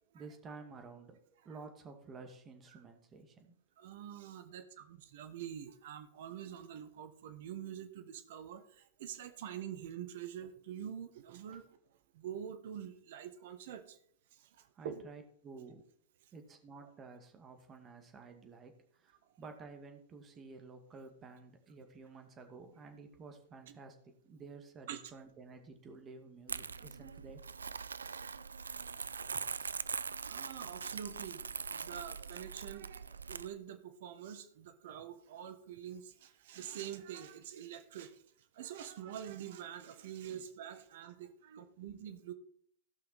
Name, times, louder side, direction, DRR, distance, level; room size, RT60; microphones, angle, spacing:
voice 1, 0.0-3.5 14.7-15.8 16.3-27.4 40.3-40.4, right 4 dB, 25° right, 4 dB, 2.2 m, -52 dB
voice 2, 3.8-11.7 12.1-14.0 14.3-15.0 23.7-23.8 24.9-25.0 28.1-28.4 30.2-31.4 31.8-38.2 38.5-42.3, right 9 dB, 65° right, 10 dB, 1.2 m, -46 dB
Crumpling crinkling, 26.5-33.5, right 5 dB, 85° right, 0.3 m, -42 dB
16.5 x 5.8 x 4.2 m, 0.64 s
hypercardioid pair, 100°, 0 cm